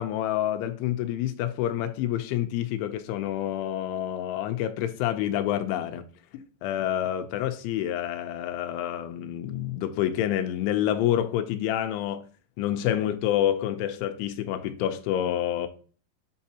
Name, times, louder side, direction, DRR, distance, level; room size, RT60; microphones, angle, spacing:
voice 1, 0.0-6.0 6.3-12.2 12.6-15.7, left 11 dB, 85° left, 3.1 m, -28 dB
8.2 x 5.6 x 2.8 m
omnidirectional pair, 5.3 m